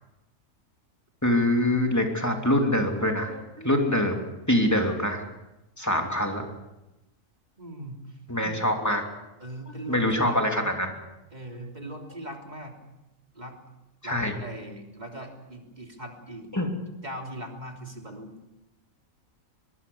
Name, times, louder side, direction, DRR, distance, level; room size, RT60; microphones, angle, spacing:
voice 1, 1.2-5.2 5.8-6.4 8.3-9.0 9.8-10.9 14.0-14.3 16.5-16.7, left 1 dB, 10° left, 2 dB, 3.1 m, -24 dB
voice 2, 7.6-8.2 9.4-10.7 11.3-12.8 13.3-13.6 14.0-16.5 17.0-18.3, right 1 dB, 30° right, 2 dB, 3.5 m, -40 dB
24.0 x 22.0 x 7.2 m, 0.97 s
omnidirectional pair, 1.4 m